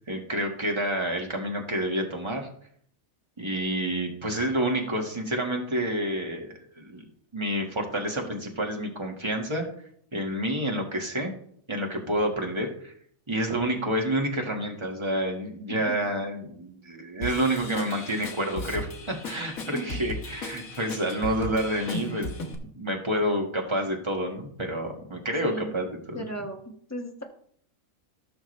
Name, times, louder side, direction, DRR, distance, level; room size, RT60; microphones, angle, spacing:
voice 1, 0.1-2.5 3.4-7.1 7.3-9.7 10.1-11.3 11.7-12.9 13.3-22.4 22.7-26.2, right 1 dB, 20° right, 1 dB, 1.8 m, -29 dB
voice 2, 15.7-16.1 19.7-20.0 25.4-25.8 26.1-27.2, right 1 dB, 10° left, 1 dB, 1.5 m, -37 dB
Drum kit / Drum, 17.2-22.5, left 2 dB, 85° left, 1.8 m, -36 dB
16.5 x 6.3 x 3.3 m, 0.63 s
omnidirectional pair, 1.4 m